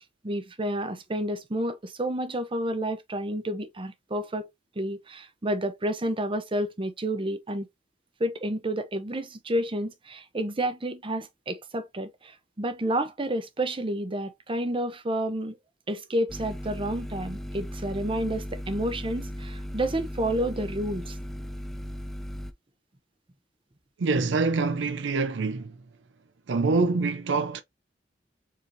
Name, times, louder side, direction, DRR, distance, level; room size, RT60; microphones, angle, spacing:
voice 1, 0.2-4.5 4.8-7.7 8.2-15.6 15.9-21.2, right 1 dB, 30° right, 0.7 m, -30 dB
sound 1, 16.3-22.5, equal, ahead, 0.5 m, -37 dB
voice 2, 24.0-25.8 26.5-27.6, right 3 dB, 70° right, 0.5 m, -25 dB
4.7 x 3.2 x 2.6 m
head